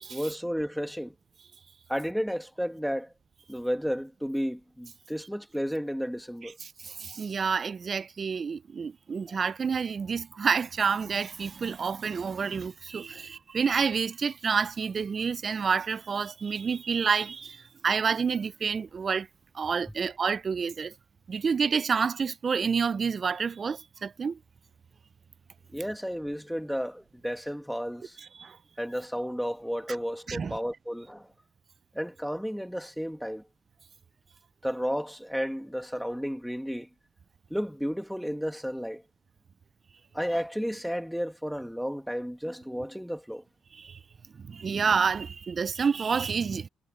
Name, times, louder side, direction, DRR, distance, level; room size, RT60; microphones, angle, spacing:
voice 1, 0.1-1.1 1.9-3.1 3.5-6.6 9.3-9.4 13.1-13.3 25.7-28.2 28.8-31.3 31.9-33.4 34.6-36.9 37.5-39.0 40.1-43.4, equal, ahead, 2.0 m, -32 dB
voice 2, 6.8-19.3 19.5-20.9 21.3-24.4 28.4-28.6 30.3-30.5 43.8-44.0 44.5-46.7, right 6 dB, 40° right, 0.5 m, -28 dB
cardioid pair, 90°, 0 cm